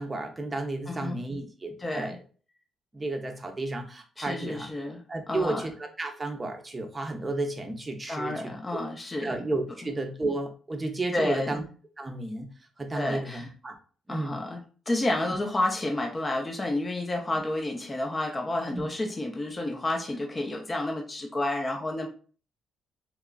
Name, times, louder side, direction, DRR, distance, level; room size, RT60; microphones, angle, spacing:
voice 1, 0.0-2.2 2.9-4.7 5.1-8.5 9.2-11.6 12.0-12.5 12.8-13.8 14.1-14.4 15.3-15.4 18.7-18.9, right 2 dB, 25° right, 4 dB, 0.6 m, -32 dB
voice 2, 0.9-1.2 1.8-2.2 4.2-5.7 8.1-9.4 11.1-11.6 12.9-13.5 14.1-22.1, left 1 dB, 25° left, 2 dB, 0.5 m, -30 dB
2.9 x 2.3 x 2.3 m, 0.39 s
cardioid pair, 90°, 0 cm